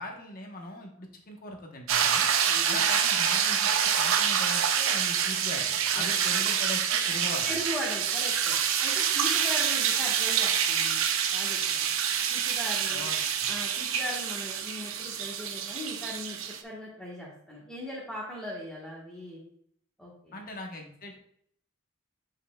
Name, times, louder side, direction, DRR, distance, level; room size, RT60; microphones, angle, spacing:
voice 1, 0.0-2.3 2.7-7.5 12.9-13.5 20.3-21.2, left 1 dB, 45° left, 2 dB, 1.0 m, -40 dB
sound 1, 1.9-16.6, right 8 dB, 75° right, 0.6 m, -27 dB
voice 2, 2.4-2.8 6.0-6.6 7.4-8.5 8.8-11.0 11.3-11.9 12.3-13.1 13.5-19.4 20.0-20.4, left 1 dB, 5° left, -7 dB, 1.2 m, -39 dB
7.8 x 5.5 x 2.2 m, 0.66 s
head